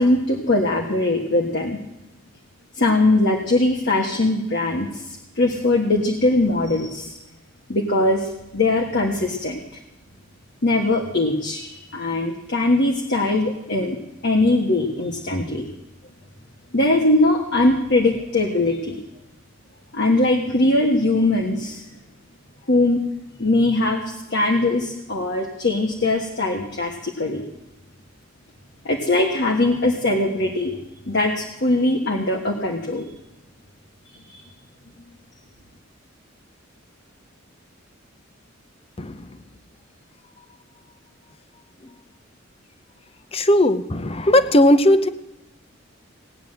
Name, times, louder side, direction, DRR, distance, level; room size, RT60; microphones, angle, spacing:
voice 1, 0.0-1.8 2.8-5.0 5.3-7.1 7.7-9.6 10.6-14.0 14.2-15.6 16.7-19.0 19.9-21.8 22.7-23.0 23.4-24.0 24.3-27.4 28.8-30.7 31.1-33.0 34.3-34.4, left 2 dB, 60° left, 1 dB, 1.6 m, -21 dB
voice 2, 39.0-39.4 41.8-41.9 43.3-45.1, left 1 dB, 30° left, 12 dB, 0.8 m, -17 dB
18.0 x 9.2 x 7.8 m, 0.93 s
head